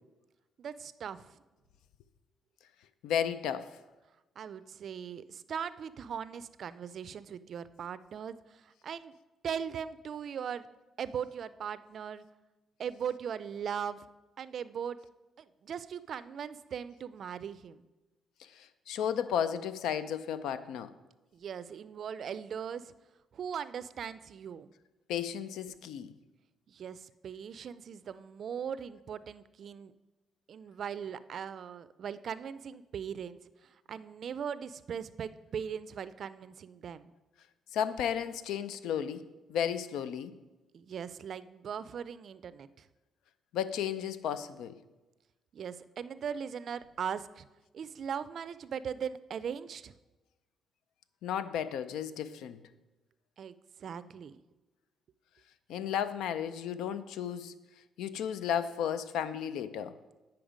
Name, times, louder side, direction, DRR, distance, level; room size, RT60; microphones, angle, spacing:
voice 1, 0.6-1.4 4.4-9.1 9.4-10.7 11.0-12.2 12.8-14.0 14.4-15.0 15.4-17.9 21.3-22.9 23.3-24.7 26.7-29.9 30.5-37.1 40.7-42.9 45.5-47.5 47.7-49.9 53.4-54.4, right 7 dB, 60° right, 15 dB, 0.4 m, -39 dB
voice 2, 3.0-3.7 18.4-20.9 25.1-26.1 37.7-39.2 39.5-40.3 43.5-44.7 51.2-52.6 55.7-57.5 58.0-60.0, left 8 dB, 85° left, 13 dB, 0.4 m, -33 dB
8.7 x 5.8 x 5.0 m, 1.1 s
cardioid pair, 90°, 0 cm